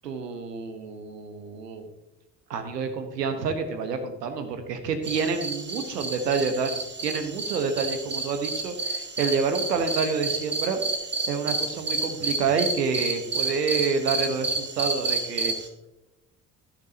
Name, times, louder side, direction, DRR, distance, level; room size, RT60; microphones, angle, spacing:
voice 1, 0.0-1.9 2.5-10.8 11.3-15.5, right 5 dB, 80° right, 7 dB, 1.3 m, -28 dB
sound 1, 5.0-15.7, right 3 dB, 20° right, 1.8 m, -30 dB
15.0 x 6.6 x 2.8 m, 0.97 s
figure-of-eight pair, 50°, 47 cm